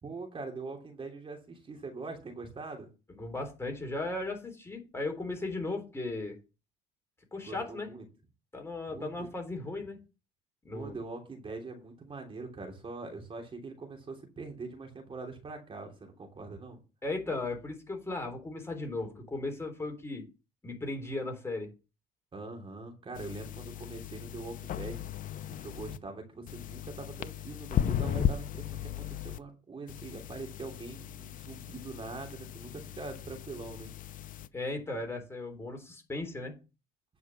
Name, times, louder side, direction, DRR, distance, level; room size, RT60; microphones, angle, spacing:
voice 1, 0.0-2.9 7.4-8.0 8.9-9.3 10.7-16.8 22.3-25.1 25.6-33.9, right 3 dB, 30° right, 3 dB, 3.1 m, -43 dB
voice 2, 3.2-6.3 7.3-7.9 8.5-10.0 10.6-11.0 17.0-20.2 20.6-21.7 34.5-36.5, left 2 dB, 15° left, 3 dB, 3.6 m, -36 dB
sound 1, 23.1-26.0 26.5-29.4 29.9-34.5, left 10 dB, 50° left, 0.7 m, -36 dB
9.7 x 5.9 x 6.1 m, 0.31 s
cardioid pair, 110°, 18 cm